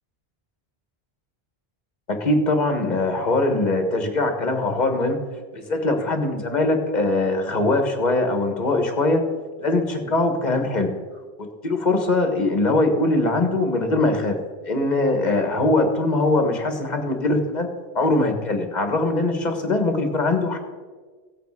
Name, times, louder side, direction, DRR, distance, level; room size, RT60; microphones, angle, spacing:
voice 1, 2.1-5.2 5.5-9.2 9.6-10.9 11.4-14.3 14.6-17.7 17.9-20.6, left 2 dB, 45° left, 5 dB, 1.6 m, -22 dB
15.5 x 8.2 x 4.7 m, 1.4 s
omnidirectional pair, 1.1 m